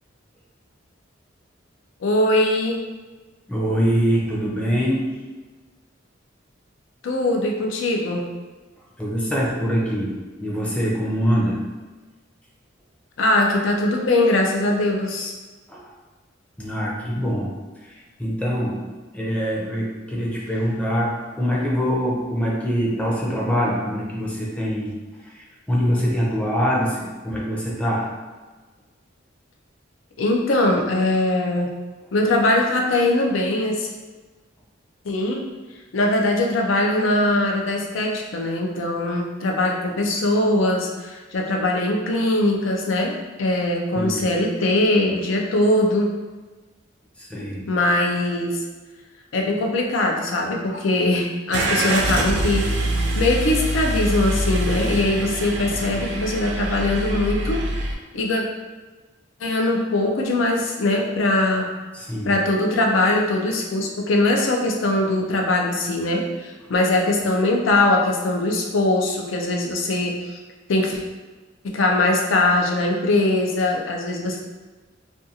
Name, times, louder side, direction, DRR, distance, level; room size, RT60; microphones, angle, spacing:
voice 1, 2.0-2.8 7.0-8.3 13.2-15.3 30.2-31.7 32.1-33.9 35.0-35.5 35.9-46.1 47.7-48.6 49.3-52.7 53.2-57.7 58.1-58.4 59.4-61.7 62.2-70.4 70.7-71.0 71.6-74.4, left 2 dB, 85° left, 1 dB, 0.5 m, -21 dB
voice 2, 3.5-5.2 9.0-11.7 15.7-15.8 16.6-17.5 17.8-24.9 25.2-28.1 43.9-44.2 47.2-47.7 61.9-62.4, equal, 5° left, -5 dB, 0.5 m, -24 dB
Car / Engine starting, 51.5-57.9, right 1 dB, 60° right, 0.4 m, -24 dB
2.5 x 2.3 x 2.8 m, 1.3 s
head